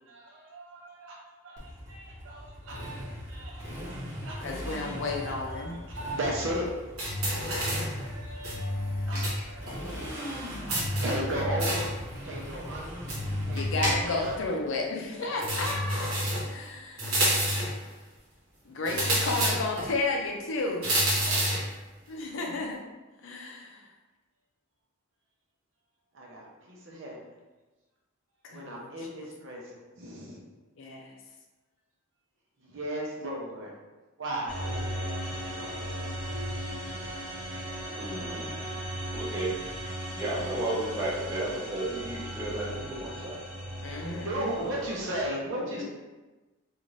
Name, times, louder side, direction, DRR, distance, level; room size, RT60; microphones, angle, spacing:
voice 1, 0.1-1.2 1.4-6.8 7.3-14.6 15.0-16.0 21.2-21.6 26.1-27.3 28.5-30.4 32.6-33.7 34.2-36.1 43.8-45.8, right 1 dB, 60° right, -3 dB, 0.7 m, -37 dB
Motorcycle, 1.6-14.4, equal, 35° right, 1.0 m, -40 dB
voice 2, 4.4-5.8 13.5-17.3 18.7-20.9 22.1-22.8 23.2-23.8 28.4-28.9 30.8-31.1 43.8-44.5, left 3 dB, 60° left, 1 dB, 0.5 m, -32 dB
sound 1, 7.0-8.0 8.4-9.4 9.7-9.8 10.7-12.0 13.1-14.3 15.4-16.5 17.0-17.8 18.8-19.9 20.8-21.7, equal, 80° right, 1.0 m, -28 dB
sound 2, 34.5-45.3, equal, 5° left, 1.0 m, -37 dB
voice 3, 37.9-38.7 39.1-39.6 40.1-43.4 43.8-44.3, right 1 dB, 15° right, -8 dB, 0.7 m, -33 dB
2.6 x 2.5 x 3.1 m, 1.2 s
head